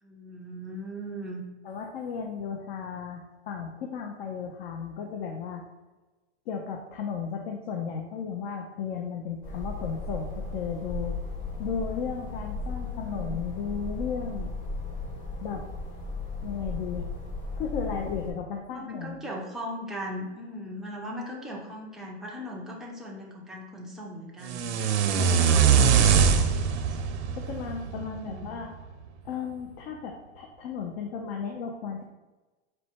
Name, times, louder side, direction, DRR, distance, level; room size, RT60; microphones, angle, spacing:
voice 1, 0.0-1.4 12.9-13.4 18.7-24.7 25.2-26.7 27.9-28.5, equal, ahead, -3 dB, 0.4 m, -39 dB
voice 2, 1.6-5.6 6.5-11.2 11.6-14.5 15.4-15.6 16.4-17.1 17.6-19.2 25.2-25.6 27.4-28.7 29.2-32.0, left 6 dB, 55° left, 2 dB, 0.6 m, -34 dB
sound 1, 9.4-18.3, left 3 dB, 20° left, 0.9 m, -36 dB
sound 2, 24.5-28.6, right 7 dB, 70° right, 0.6 m, -22 dB
4.4 x 2.2 x 4.4 m, 1.2 s
hypercardioid pair, 130°, 35 cm